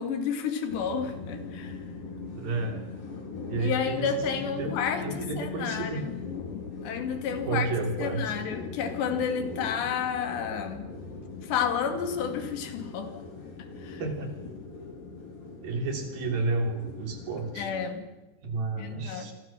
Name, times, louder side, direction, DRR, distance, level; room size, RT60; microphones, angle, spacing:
voice 1, 0.0-1.8 3.6-6.1 6.8-7.7 8.0-10.9 11.4-13.2 13.8-14.0 17.6-18.1 18.8-19.3, left 7 dB, 90° left, 4.6 m, -31 dB
sound 1, 0.7-17.9, left 4 dB, 55° left, 6.1 m, -40 dB
voice 2, 2.3-2.8 3.5-4.7 5.0-6.0 7.5-8.4 14.0-14.4 15.6-17.7 18.4-19.3, right 3 dB, 60° right, 5.1 m, -31 dB
28.0 x 23.0 x 7.5 m
omnidirectional pair, 4.8 m